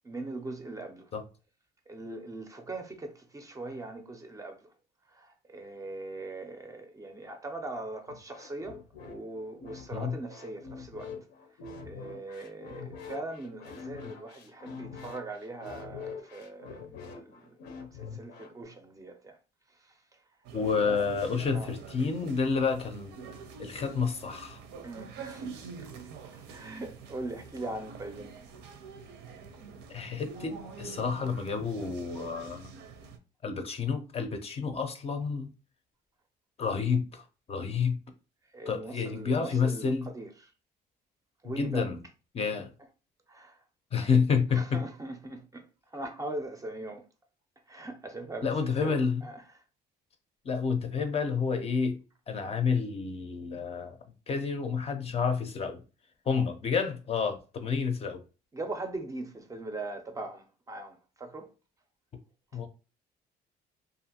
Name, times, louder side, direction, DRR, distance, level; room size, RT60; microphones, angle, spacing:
voice 1, 0.0-1.1 1.9-4.7 5.1-11.1 11.8-17.5 17.9-19.4 19.8-20.2 20.8-21.1 21.5-21.7 24.8-25.9 26.3-28.3 38.5-40.5 41.4-41.9 42.4-42.5 43.3-43.6 44.5-45.7 45.9-47.0 47.7-49.6 58.5-61.5, right 2 dB, 20° right, 0.4 m, -41 dB
sound 1, 8.1-18.6, left 5 dB, 80° left, 0.6 m, -44 dB
sound 2, 20.4-33.2, right 5 dB, 90° right, 0.5 m, -46 dB
voice 2, 20.5-23.1 23.6-24.6 29.9-32.6 33.4-35.5 36.6-37.2 37.5-38.0 38.7-40.1 41.4-42.0 42.3-42.7 43.9-44.8 48.4-49.3 50.4-52.0 52.3-54.0 54.3-55.8 56.3-58.2 62.5-62.7, left 5 dB, 35° left, 0.5 m, -29 dB
2.5 x 2.5 x 2.7 m
cardioid pair, 110°, 17 cm